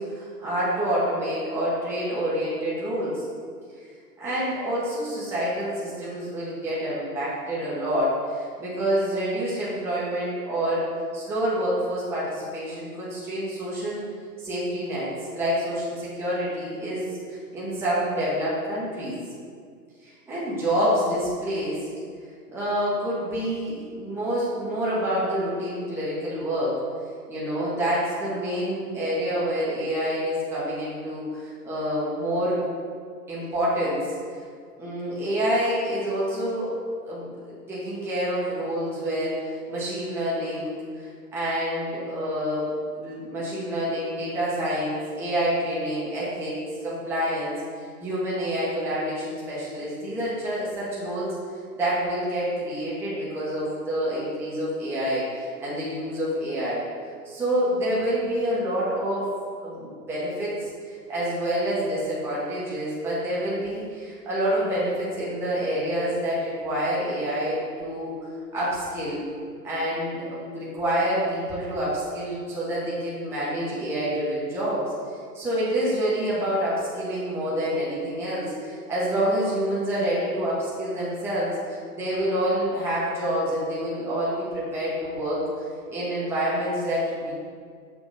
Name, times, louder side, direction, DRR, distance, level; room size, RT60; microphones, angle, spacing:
voice 1, 0.0-3.1 3.8-3.9 4.2-10.9 11.1-14.0 14.4-19.2 20.0-21.8 22.5-26.7 27.3-32.6 33.3-34.2 34.8-36.7 37.0-51.3 51.8-56.8 57.2-59.3 59.6-68.2 68.5-69.2 69.6-74.9 75.3-87.3, equal, 5° right, -9 dB, 1.0 m, -27 dB
6.4 x 2.9 x 5.2 m, 2.1 s
hypercardioid pair, 125°, 49 cm